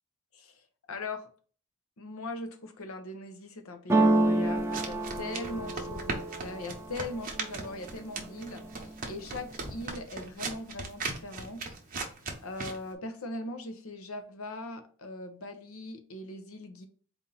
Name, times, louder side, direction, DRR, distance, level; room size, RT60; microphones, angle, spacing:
voice 1, 0.3-1.3 2.0-12.1 12.4-16.9, left 2 dB, 75° left, 7 dB, 0.8 m, -40 dB
sound 1, 3.9-7.8 8.2-8.8 9.1-9.9, right 2 dB, 10° right, 0.4 m, -28 dB
sound 2, 4.6-12.9, right 4 dB, 40° right, 0.8 m, -39 dB
4.2 x 2.7 x 3.8 m, 0.44 s
head